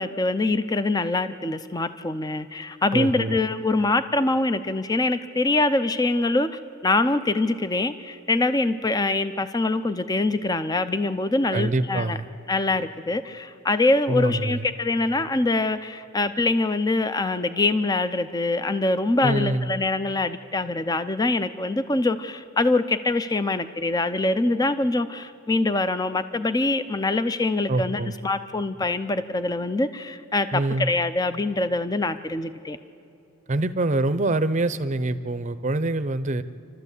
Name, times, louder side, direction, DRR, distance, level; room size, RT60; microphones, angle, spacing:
voice 1, 0.0-6.5 6.8-12.2 12.5-32.8, left 2 dB, 20° left, 12 dB, 0.5 m, -24 dB
voice 2, 2.9-3.4 11.5-12.3 14.1-14.7 19.2-19.7 27.7-28.1 30.5-30.9 33.5-36.4, right 2 dB, 35° right, 12 dB, 0.6 m, -25 dB
29.0 x 13.0 x 8.3 m, 2.8 s
head